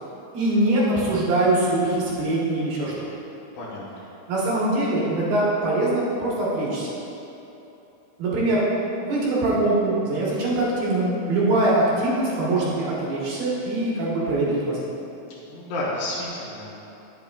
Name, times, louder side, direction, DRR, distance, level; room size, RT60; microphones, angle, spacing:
voice 1, 0.3-2.9 4.3-6.9 8.2-8.6 9.0-14.8, right 2 dB, 65° right, -7 dB, 2.8 m, -23 dB
voice 2, 3.5-4.0 15.4-16.7, left 1 dB, 70° left, -8 dB, 2.1 m, -31 dB
10.5 x 8.1 x 2.4 m, 3.0 s
omnidirectional pair, 5.6 m